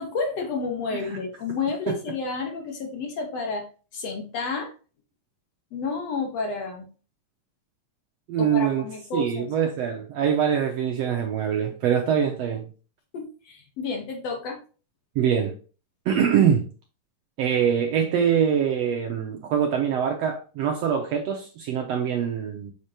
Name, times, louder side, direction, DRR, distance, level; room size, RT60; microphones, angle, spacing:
voice 1, 0.0-3.7 3.9-4.7 5.7-6.9 8.4-9.5 13.1-14.6, left 4 dB, 60° left, 2.0 m, -30 dB
voice 2, 8.3-8.9 9.1-12.7 15.1-15.5 16.1-16.7 17.4-22.7, right 8 dB, 80° right, 1.5 m, -24 dB
7.4 x 4.9 x 2.9 m
omnidirectional pair, 3.9 m